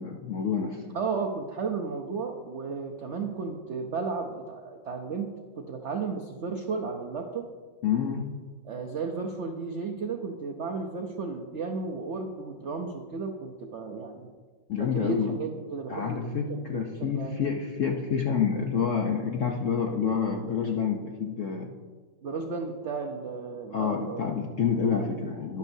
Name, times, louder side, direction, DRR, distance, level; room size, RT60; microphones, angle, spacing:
voice 1, 0.0-0.8 7.8-8.3 14.7-15.3 15.9-21.7 23.7-25.6, left 6 dB, 65° left, 1 dB, 0.7 m, -28 dB
voice 2, 0.9-7.5 8.6-14.3 14.8-17.4 22.2-24.2, right 4 dB, 80° right, 3 dB, 0.6 m, -34 dB
12.0 x 10.5 x 2.7 m, 1.5 s
omnidirectional pair, 2.1 m